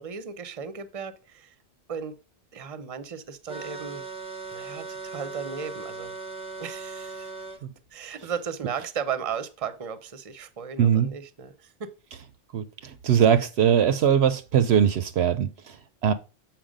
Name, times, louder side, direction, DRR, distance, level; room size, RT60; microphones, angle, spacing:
voice 1, 0.0-1.5 1.9-2.1 2.5-4.0 4.5-6.1 6.6-7.3 7.9-11.9, right 7 dB, 35° right, 0.7 m, -35 dB
sound 1, 3.5-7.6, right 3 dB, 5° right, 0.8 m, -38 dB
voice 2, 10.8-11.1 12.5-16.1, right 8 dB, 70° right, 0.8 m, -21 dB
7.5 x 4.5 x 5.1 m
omnidirectional pair, 1.2 m